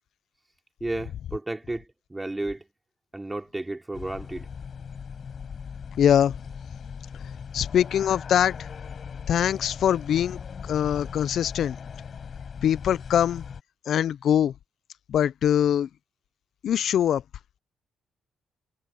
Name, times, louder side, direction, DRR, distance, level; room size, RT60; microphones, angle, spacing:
voice 1, 0.8-1.8 2.1-2.6 3.1-4.5, right 2 dB, 15° right, 3.4 m, -32 dB
sound 1, 3.9-13.6, left 6 dB, 50° left, 4.9 m, -39 dB
voice 2, 6.0-6.3 7.5-8.6 9.3-10.4 10.7-11.8 12.6-13.4 13.9-14.5 15.1-15.9 16.6-17.2, left 9 dB, 65° left, 0.5 m, -22 dB
cardioid pair, 90°, 0 cm